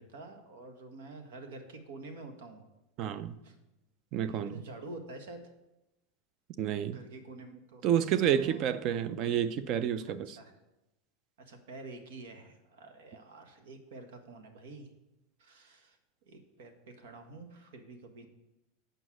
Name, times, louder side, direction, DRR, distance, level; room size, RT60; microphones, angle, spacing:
voice 1, 0.0-2.6 3.4-3.5 4.2-5.4 6.9-7.8 8.3-8.6 10.0-10.5 11.5-14.9 15.4-16.0 16.3-18.3, right 2 dB, 85° right, 1.5 m, -48 dB
voice 2, 3.0-3.3 4.1-4.6 6.6-7.0 7.8-10.4, right 9 dB, 35° right, 0.4 m, -29 dB
8.0 x 5.4 x 6.2 m
supercardioid pair, 170°, 0 cm